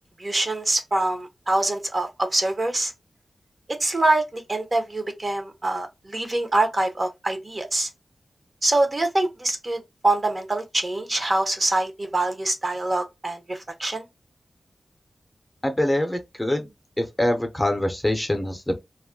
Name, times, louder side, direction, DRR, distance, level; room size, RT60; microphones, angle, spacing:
voice 1, 0.2-2.9 3.7-7.9 8.6-14.0, right 2 dB, 35° right, 0.7 m, -25 dB
voice 2, 15.6-16.7 17.0-18.8, left 1 dB, 15° left, 0.7 m, -24 dB
2.3 x 2.1 x 3.6 m
wide cardioid pair, 70°, 0 cm